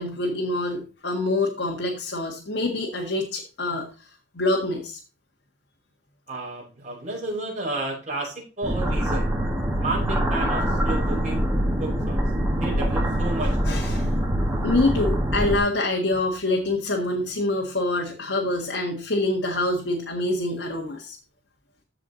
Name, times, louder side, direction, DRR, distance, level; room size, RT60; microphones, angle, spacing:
voice 1, 0.0-5.0 13.6-14.1 14.6-21.2, left 2 dB, 70° left, 0 dB, 1.7 m, -26 dB
voice 2, 6.3-9.3 9.8-11.5 11.8-12.2 12.6-13.8, right 2 dB, 35° right, -3 dB, 5.5 m, -32 dB
sound 1, 8.6-15.6, equal, 10° right, 1.8 m, -24 dB
14.5 x 4.9 x 4.0 m, 0.34 s
head